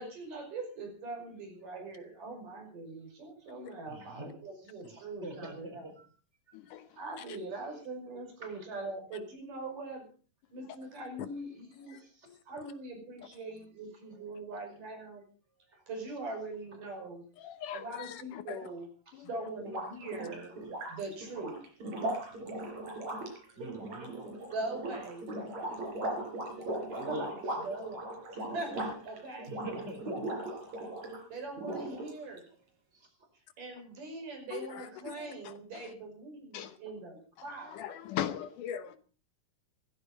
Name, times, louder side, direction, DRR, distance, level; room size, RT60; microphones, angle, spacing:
voice 1, 0.0-5.9 7.0-10.1 10.5-12.0 12.5-15.3 15.9-17.2 17.7-18.9 19.2-20.6 20.9-21.6 24.5-25.3 27.6-29.6 31.3-32.5 33.6-37.8, right 2 dB, 70° right, 7.1 m, -42 dB
voice 2, 3.9-4.3 4.8-5.9 8.4-8.5 23.6-24.1 26.9-27.6 29.5-30.2, right 2 dB, 20° right, 4.5 m, -42 dB
voice 3, 17.4-18.6 19.1-19.3 34.5-35.3 36.5-36.7 37.7-39.0, left 10 dB, 75° left, 2.5 m, -39 dB
sound 1, 19.6-31.2 31.6-32.4, right 1 dB, 55° right, 5.4 m, -38 dB
16.5 x 15.0 x 5.2 m
omnidirectional pair, 3.8 m